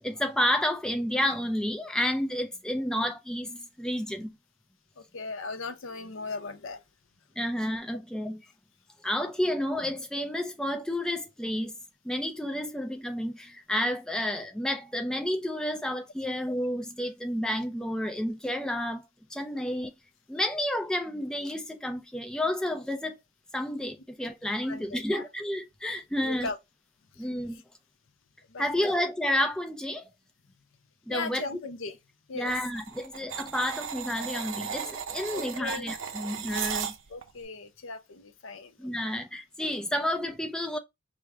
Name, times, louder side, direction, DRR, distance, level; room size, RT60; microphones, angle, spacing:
voice 1, 0.0-4.3 7.4-8.4 9.0-11.7 12.0-19.0 19.3-19.9 20.3-23.2 23.5-26.5 27.2-27.6 28.6-30.0 31.1-31.4 32.3-36.9 38.8-40.8, left 1 dB, 5° left, 0.3 m, -30 dB
voice 2, 5.0-6.8 20.4-20.5 24.6-25.3 26.2-26.6 27.2-27.3 28.5-28.9 31.1-32.0 32.3-32.5 35.3-35.9 37.1-39.1, left 3 dB, 70° left, 0.6 m, -38 dB
sound 1, 32.5-37.3, right 7 dB, 75° right, 0.6 m, -36 dB
4.8 x 2.1 x 3.5 m
head